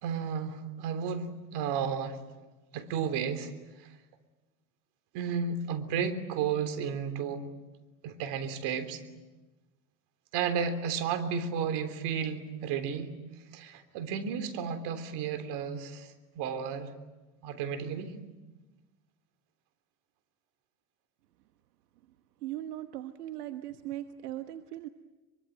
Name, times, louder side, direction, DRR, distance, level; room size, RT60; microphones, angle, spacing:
voice 1, 0.0-2.2 2.7-3.5 5.1-7.5 8.0-9.0 10.3-13.1 13.5-16.9 17.4-18.1, right 7 dB, 60° right, 9 dB, 3.4 m, -33 dB
voice 2, 22.4-24.9, right 13 dB, 85° right, 9 dB, 1.3 m, -39 dB
24.5 x 24.0 x 9.0 m, 1.1 s
hypercardioid pair, 95°, 45 cm